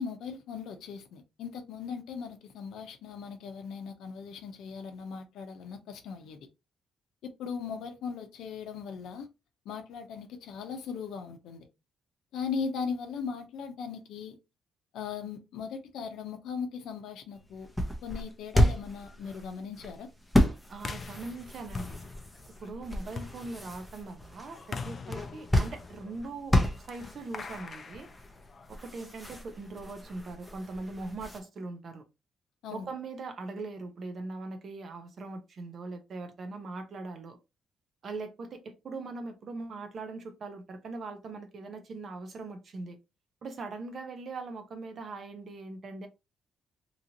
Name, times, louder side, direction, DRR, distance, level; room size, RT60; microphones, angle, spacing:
voice 1, 0.0-6.4 7.4-9.3 9.7-11.7 12.3-14.4 14.9-17.7 18.0-20.1 32.6-32.9, left 6 dB, 80° left, 0.6 m, -38 dB
sound 1, 17.3-31.4, equal, 5° left, 0.7 m, -32 dB
voice 2, 20.7-22.0 22.6-28.1 28.7-32.0 32.7-37.4 38.0-43.0 43.4-46.1, right 3 dB, 55° right, 0.7 m, -41 dB
sound 2, 20.8-28.9, left 4 dB, 40° left, 0.4 m, -43 dB
3.0 x 2.6 x 2.8 m
cardioid pair, 90°, 0 cm